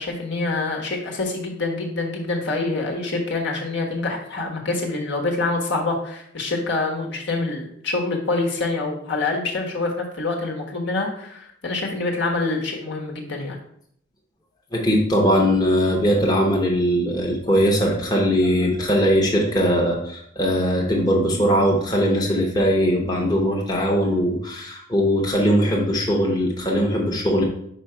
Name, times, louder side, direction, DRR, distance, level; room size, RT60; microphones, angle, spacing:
voice 1, 0.0-13.6, left 3 dB, 65° left, 0 dB, 1.3 m, -26 dB
voice 2, 14.7-27.4, equal, 20° left, -2 dB, 0.9 m, -20 dB
5.1 x 4.9 x 4.5 m, 0.70 s
head